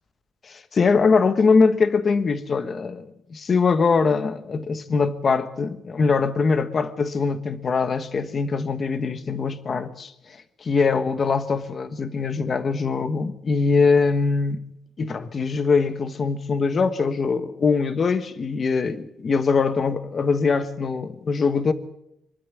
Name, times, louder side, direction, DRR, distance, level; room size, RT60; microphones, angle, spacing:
voice 1, 0.4-14.6 15.0-21.7, left 4 dB, 30° left, 1.2 m, -22 dB
24.0 x 12.5 x 8.6 m
cardioid pair, 175°, 0 cm